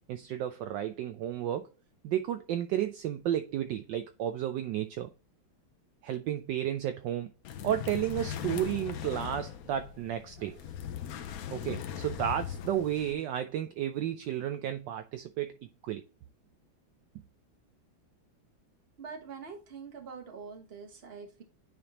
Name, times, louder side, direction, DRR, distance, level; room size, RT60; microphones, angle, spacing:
voice 1, 0.1-1.7 2.0-5.1 6.0-7.3 7.6-10.6 11.5-16.0 17.1-17.2, right 11 dB, 75° right, 1.1 m, -32 dB
sound 1, 7.5-13.1, left 9 dB, 80° left, 0.8 m, -39 dB
voice 2, 19.0-21.4, right 5 dB, 35° right, 1.2 m, -44 dB
9.6 x 3.5 x 2.9 m
omnidirectional pair, 2.2 m